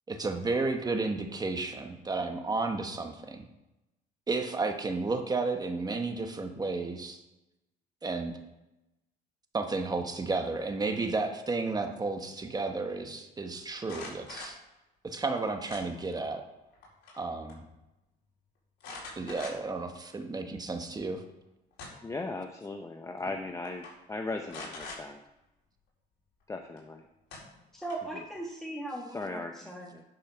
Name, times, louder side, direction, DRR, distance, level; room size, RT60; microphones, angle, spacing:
voice 1, 0.1-3.5 4.3-7.2 8.0-8.4 9.5-14.6 15.0-16.4 17.2-17.6 19.2-21.2, right 3 dB, 25° right, 5 dB, 1.3 m, -32 dB
sound 1, 13.8-14.6 15.7-16.3 16.7-17.2 17.5-17.6 18.8-19.8 20.3-20.4 21.5-22.2 23.2-23.3 23.6-23.9 24.5-25.0 26.8-26.9 27.3-28.1, left 3 dB, 80° left, 4.1 m, -44 dB
voice 2, 22.0-25.2 26.5-27.0 29.1-30.0, left 3 dB, 20° left, 5 dB, 0.7 m, -38 dB
voice 3, 27.8-29.9, right 2 dB, ahead, -2 dB, 1.5 m, -39 dB
10.5 x 5.5 x 5.6 m, 0.95 s
cardioid pair, 110°, 17 cm